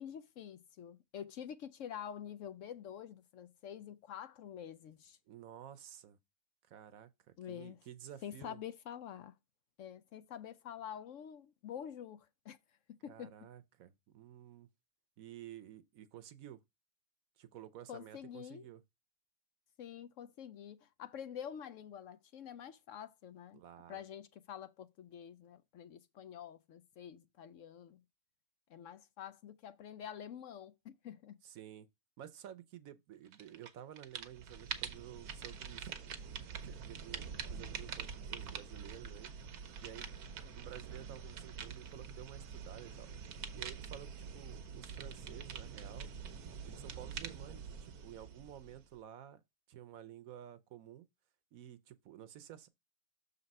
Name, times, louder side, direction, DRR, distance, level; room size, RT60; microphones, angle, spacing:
voice 1, 0.0-5.2 7.4-7.8 8.2-9.3 9.8-12.6 12.9-13.3 17.9-18.7 19.8-23.6 23.9-28.0 28.7-31.3, left 9 dB, 65° left, 0.9 m, -47 dB
voice 2, 5.3-6.2 6.7-8.6 13.1-14.7 15.2-16.6 17.4-18.8 23.5-24.0 31.4-31.9 32.2-36.0 36.6-39.3 39.8-40.1 40.5-43.1 43.5-46.1 46.7-49.4 49.7-51.1 51.5-52.7, right 11 dB, 70° right, 1.1 m, -52 dB
sound 1, 33.3-33.7 34.0-49.0, right 7 dB, 85° right, 1.4 m, -45 dB
6.7 x 4.0 x 5.3 m
omnidirectional pair, 1.6 m